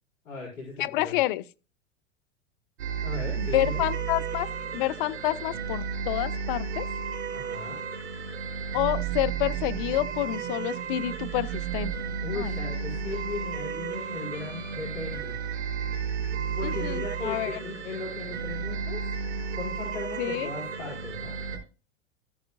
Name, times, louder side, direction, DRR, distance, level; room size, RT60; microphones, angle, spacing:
voice 1, 0.2-1.2 3.0-3.8 7.3-7.8 12.2-15.4 16.6-19.1 19.6-21.3, left 3 dB, 65° left, 4.7 m, -37 dB
voice 2, 0.8-1.4 3.4-4.5 4.7-6.9 8.7-11.9 12.4-12.5 16.6-17.6 20.2-20.5, left 16 dB, 45° left, 0.5 m, -28 dB
sound 1, 2.8-21.6, right 6 dB, 65° right, 3.7 m, -33 dB
13.5 x 8.7 x 2.5 m
figure-of-eight pair, 95°, 38 cm